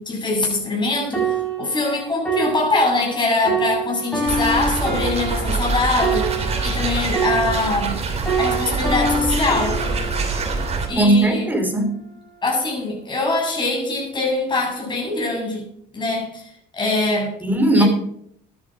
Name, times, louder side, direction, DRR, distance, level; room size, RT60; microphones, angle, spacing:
voice 1, 0.0-8.0 8.4-9.8 10.9-11.5 12.4-15.6 15.9-17.3 17.7-17.9, left 2 dB, 25° left, 0 dB, 7.4 m, -23 dB
sound 1, 1.1-8.0 8.3-11.8 12.5-12.7, right 4 dB, 5° left, 7.2 m, -27 dB
sound 2, 4.3-10.9, right 3 dB, 40° right, 3.1 m, -24 dB
voice 2, 10.9-11.9 17.4-17.8, right 1 dB, 10° right, 5 dB, 3.4 m, -17 dB
13.0 x 11.0 x 5.1 m, 0.67 s
cardioid pair, 110°, 17 cm